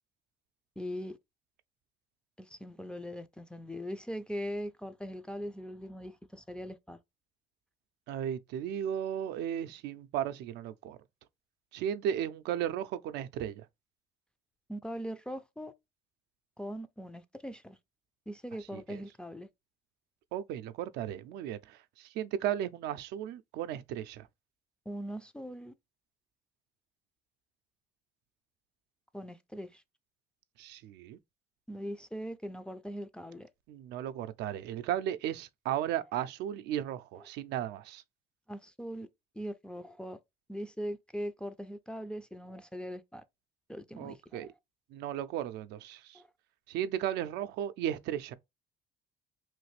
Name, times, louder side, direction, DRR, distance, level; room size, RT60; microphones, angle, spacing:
voice 1, 0.8-1.2 2.4-7.0 14.7-15.7 16.6-17.8 18.3-19.5 24.9-25.7 29.1-29.8 31.7-33.5 37.1-37.3 38.5-39.1 39.4-40.2 40.5-43.2 43.7-44.5 46.1-46.3, equal, 5° left, 0.3 m, -41 dB
voice 2, 8.1-11.0 11.7-13.6 20.3-21.6 22.2-24.3 30.6-31.2 33.7-38.0 44.0-44.5 44.9-46.0 46.7-48.3, right 10 dB, 80° right, 0.4 m, -35 dB
3.1 x 2.5 x 3.2 m
cardioid pair, 110°, 17 cm